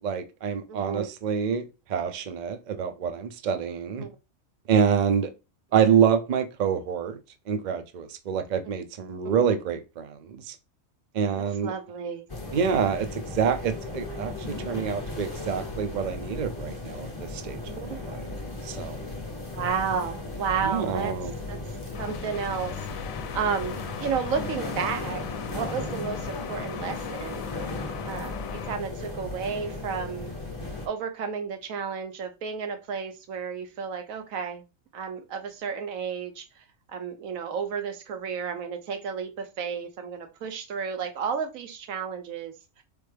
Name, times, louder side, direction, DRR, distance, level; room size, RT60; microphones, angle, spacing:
voice 1, 0.0-1.6 1.9-4.1 4.7-5.3 5.7-7.2 7.5-10.5 11.1-11.7 12.5-14.3 14.7-17.6 18.0-18.2 18.6-19.0 20.6-21.3, right 7 dB, 55° right, 0.5 m, -26 dB
voice 2, 0.7-1.1 4.0-4.2 11.6-12.2 17.6-18.0 19.5-21.1 21.5-21.6 22.0-22.7 23.3-25.2 25.5-27.5 28.1-30.3 30.8-34.6 34.9-36.4 36.9-42.6, right 6 dB, 85° right, 1.2 m, -32 dB
sound 1, 12.3-30.9, left 2 dB, 20° left, 0.8 m, -36 dB
sound 2, 21.9-28.8, left 10 dB, 90° left, 1.0 m, -39 dB
4.3 x 3.4 x 3.3 m
omnidirectional pair, 1.4 m